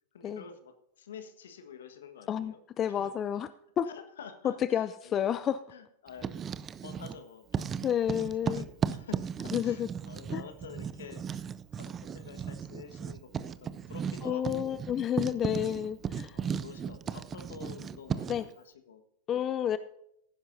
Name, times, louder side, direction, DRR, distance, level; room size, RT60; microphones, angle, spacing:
voice 1, 0.1-2.6 2.9-3.1 3.9-5.1 5.7-6.4 6.8-8.1 8.4-11.4 11.7-14.8 15.3-15.8 16.3-19.0 19.3-19.8, left 6 dB, 70° left, 1.4 m, -49 dB
voice 2, 2.3-3.5 3.8-3.9 4.4-5.6 7.8-8.6 9.5-9.9 10.3-10.4 14.2-16.4 18.3-18.5 19.3-19.8, left 10 dB, 30° left, 0.4 m, -30 dB
Writing, 6.1-7.2 7.5-18.5, right 7 dB, 25° right, 0.5 m, -36 dB
17.0 x 10.0 x 2.7 m
hypercardioid pair, 95°, 0 cm